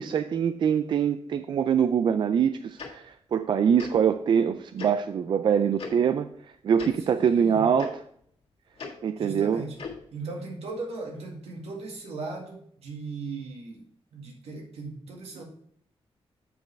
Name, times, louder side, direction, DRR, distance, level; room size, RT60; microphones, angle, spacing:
voice 1, 0.0-6.3 6.6-7.9 9.0-9.6, right 7 dB, 50° right, 10 dB, 0.3 m, -24 dB
Tick-tock, 2.8-2.9 3.8-3.9 4.8-4.9 5.8-5.9 6.7-6.9 7.8-7.9 8.8-8.9 9.8-10.0, left 5 dB, 70° left, 1.8 m, -37 dB
voice 2, 7.0-7.7 9.2-9.8 10.1-13.8 14.1-15.4, right 3 dB, 80° right, 0 dB, 1.9 m, -38 dB
7.8 x 5.3 x 4.6 m, 0.66 s
wide cardioid pair, 165°, 10 cm